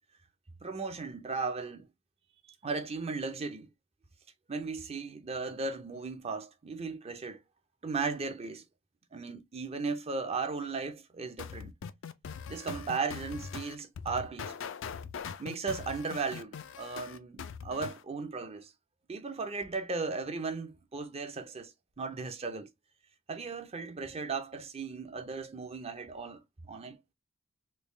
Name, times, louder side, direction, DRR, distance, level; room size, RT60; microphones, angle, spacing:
voice 1, 0.6-1.9 2.6-3.7 4.5-7.4 7.8-8.6 9.1-11.7 12.5-14.6 15.4-18.7 19.1-22.7 23.3-26.4 26.7-27.0, right 4 dB, 30° right, 0.6 m, -36 dB
sound 1, 11.4-18.0, left 6 dB, 65° left, 0.4 m, -41 dB
3.4 x 2.3 x 3.2 m
head